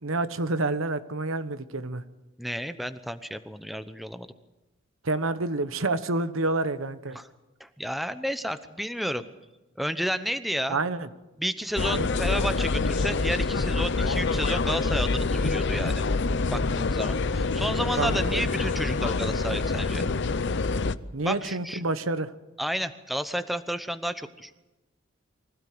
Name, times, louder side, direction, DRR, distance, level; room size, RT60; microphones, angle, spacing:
voice 1, 0.0-2.0 5.0-7.2 10.7-11.1 11.9-12.1 18.0-18.5 21.1-22.3, right 2 dB, 85° right, 11 dB, 1.1 m, -28 dB
voice 2, 2.4-4.3 7.1-7.3 7.6-9.2 9.8-10.8 11.4-15.9 16.5-20.1 21.2-21.8 22.6-24.5, equal, ahead, 10 dB, 0.9 m, -31 dB
sound 1, 11.8-21.0, left 3 dB, 60° left, 0.7 m, -26 dB
24.5 x 16.0 x 7.8 m, 1.0 s
head